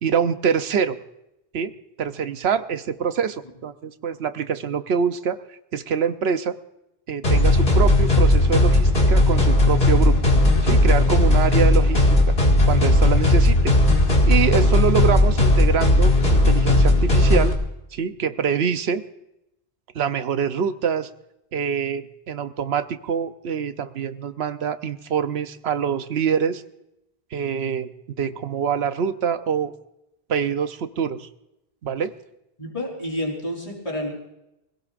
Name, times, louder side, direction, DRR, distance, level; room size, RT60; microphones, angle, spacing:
voice 1, 0.0-1.0 1.5-1.7 2.0-5.4 5.7-6.5 7.1-10.2 10.6-12.3 12.7-13.7 14.3-17.5 17.9-19.0 19.9-21.1 21.5-26.6 27.3-27.9 28.2-29.7 30.3-31.3 31.8-32.1, right 7 dB, 85° right, 10 dB, 1.0 m, -25 dB
sound 1, 7.2-17.5, left 1 dB, 75° left, 2.4 m, -17 dB
voice 2, 32.6-34.2, left 1 dB, 35° left, 0 dB, 4.0 m, -29 dB
24.0 x 16.5 x 2.5 m, 0.87 s
omnidirectional pair, 1.0 m